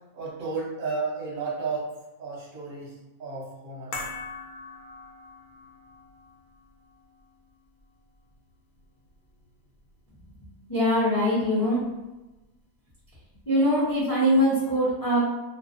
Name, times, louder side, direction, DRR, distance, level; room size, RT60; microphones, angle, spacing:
voice 1, 0.1-1.9 2.2-2.9 3.2-3.9, right 4 dB, 45° right, -5 dB, 0.7 m, -32 dB
sound 1, 3.9-10.3 10.6-10.7, left 3 dB, 70° left, 0.9 m, -43 dB
voice 2, 10.7-11.8 13.5-15.2, equal, 20° left, -10 dB, 0.6 m, -22 dB
2.4 x 2.1 x 2.5 m, 1.1 s
omnidirectional pair, 1.5 m